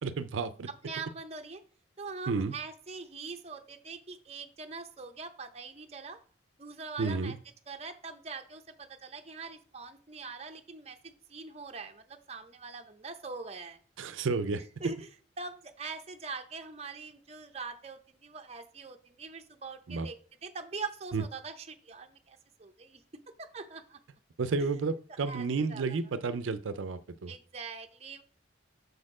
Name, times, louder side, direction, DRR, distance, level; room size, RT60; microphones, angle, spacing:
voice 1, 0.0-0.7 2.3-2.5 7.0-7.4 14.0-14.6 19.9-20.1 21.1-21.2 24.4-27.3, right 4 dB, 90° right, 12 dB, 0.5 m, -31 dB
voice 2, 0.7-1.6 2.0-6.2 6.6-7.4 7.7-13.8 14.8-15.1 15.4-24.0 24.6-24.7 25.3-25.8 27.3-28.2, right 4 dB, 35° right, 6 dB, 0.6 m, -43 dB
6.7 x 4.3 x 4.8 m, 0.44 s
head